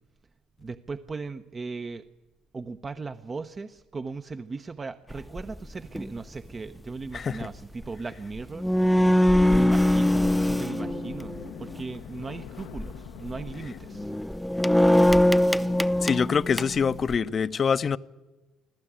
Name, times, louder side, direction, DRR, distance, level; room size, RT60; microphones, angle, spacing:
voice 1, 0.6-2.1 2.5-9.2 9.5-14.1, right 4 dB, 35° right, 0.8 m, -37 dB
sound 1, 5.1-5.4 5.9-6.2 8.1-8.2 8.4-11.7 12.6-12.9 13.3-13.5 13.9-17.2, left 1 dB, 5° left, 0.8 m, -22 dB
sound 2, 8.8-14.2, left 11 dB, 80° left, 0.8 m, -44 dB
voice 2, 16.0-18.0, left 6 dB, 45° left, 0.7 m, -25 dB
25.0 x 15.5 x 8.8 m
supercardioid pair, 70°, 0 cm